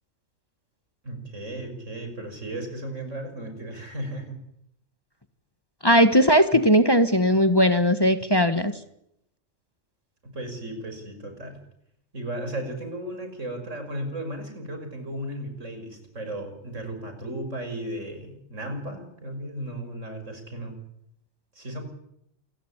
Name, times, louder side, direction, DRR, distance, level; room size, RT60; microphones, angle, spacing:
voice 1, 1.0-4.4 10.2-11.6 12.1-20.7 21.5-21.8, right 1 dB, 80° right, 6 dB, 5.9 m, -35 dB
voice 2, 5.8-8.7, equal, 20° left, 9 dB, 1.4 m, -18 dB
27.5 x 15.5 x 10.0 m, 0.77 s
omnidirectional pair, 1.3 m